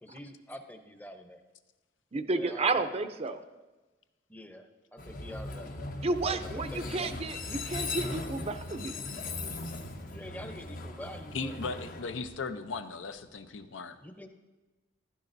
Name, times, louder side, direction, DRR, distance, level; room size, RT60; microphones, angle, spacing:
voice 1, 0.0-1.4 2.3-2.9 4.3-5.7 6.5-6.9 10.1-11.6 14.0-14.3, left 1 dB, 10° left, 6 dB, 0.8 m, -45 dB
voice 2, 2.1-3.4 6.0-9.0, right 3 dB, 35° right, 9 dB, 0.5 m, -31 dB
Train, 5.0-12.9, left 2 dB, 45° left, 0.9 m, -39 dB
voice 3, 11.3-14.0, left 4 dB, 75° left, 9 dB, 0.6 m, -37 dB
15.0 x 12.0 x 2.6 m, 1.2 s
head